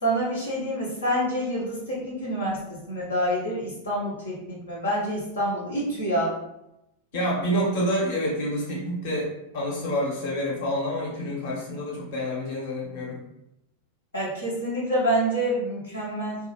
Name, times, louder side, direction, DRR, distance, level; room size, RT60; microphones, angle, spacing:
voice 1, 0.0-6.3 14.1-16.4, right 1 dB, 75° left, -8 dB, 0.9 m, -27 dB
voice 2, 7.1-13.2, equal, 50° left, -4 dB, 1.1 m, -28 dB
2.8 x 2.4 x 2.9 m, 0.86 s
figure-of-eight pair, 90°, 0 cm